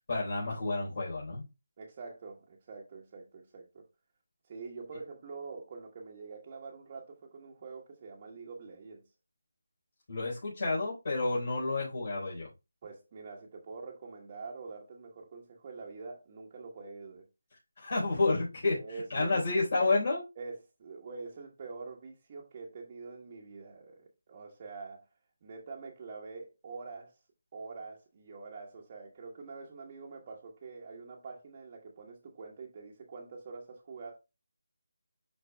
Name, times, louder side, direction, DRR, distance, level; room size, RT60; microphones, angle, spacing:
voice 1, 0.1-1.5 10.1-12.5 17.8-20.3, left 3 dB, 50° left, 4.1 m, -30 dB
voice 2, 1.8-3.8 4.4-9.0 12.8-17.3 18.7-19.4 20.4-25.0 25.4-27.1 27.5-34.1, right 4 dB, 30° right, 1.2 m, -45 dB
11.0 x 3.9 x 2.3 m
figure-of-eight pair, 165°, 0 cm